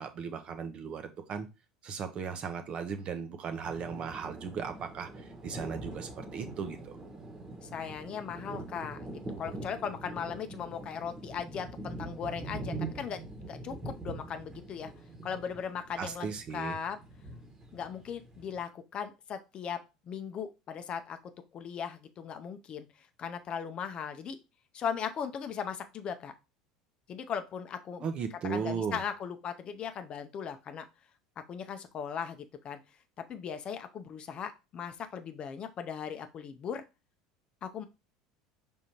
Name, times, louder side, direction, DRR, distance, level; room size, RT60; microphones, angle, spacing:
voice 1, 0.0-1.5 1.8-6.9 16.0-16.8 28.0-29.0, right 6 dB, 45° right, 8 dB, 0.8 m, -36 dB
sound 1, 3.6-18.6, right 2 dB, 25° right, 1.3 m, -43 dB
voice 2, 7.6-13.2 13.5-14.9 15.2-17.0 17.7-19.8 20.1-21.2 21.5-22.9 23.2-24.4 24.7-26.3 27.1-28.1 28.4-30.9 31.5-32.8 33.3-36.8 37.6-37.9, left 7 dB, 40° left, 8 dB, 0.6 m, -38 dB
5.0 x 3.5 x 2.9 m, 0.27 s
hypercardioid pair, 75°, 3 cm